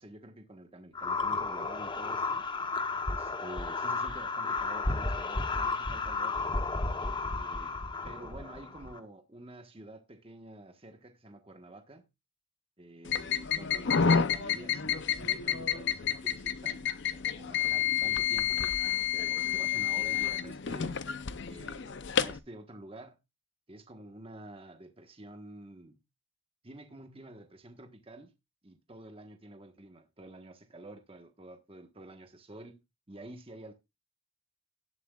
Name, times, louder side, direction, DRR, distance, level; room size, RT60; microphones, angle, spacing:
voice 1, 0.0-2.5 3.1-6.5 7.4-12.0 12.8-21.0 21.5-23.2 23.7-26.0 26.6-28.3 28.6-32.8 33.1-33.7, right 1 dB, 25° right, 1.3 m, -49 dB
sound 1, 0.9-9.0, left 3 dB, 25° left, 0.9 m, -33 dB
sound 2, 13.1-22.4, left 8 dB, 60° left, 0.6 m, -30 dB
18.0 x 7.7 x 2.4 m
head